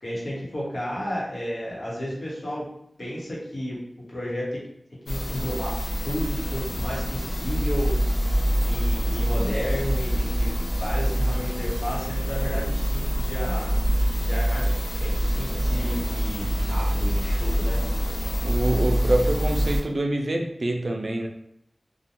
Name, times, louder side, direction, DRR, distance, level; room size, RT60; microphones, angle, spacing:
voice 1, 0.0-2.7 3.0-3.8 4.1-4.6 5.1-7.9 8.6-13.8 14.2-17.8, equal, 65° left, -6 dB, 0.9 m, -32 dB
sound 1, 5.1-19.8, equal, 85° left, 0.4 m, -25 dB
voice 2, 18.4-21.3, right 1 dB, 60° right, 2 dB, 0.3 m, -25 dB
2.4 x 2.1 x 2.8 m, 0.76 s
wide cardioid pair, 75°, 0 cm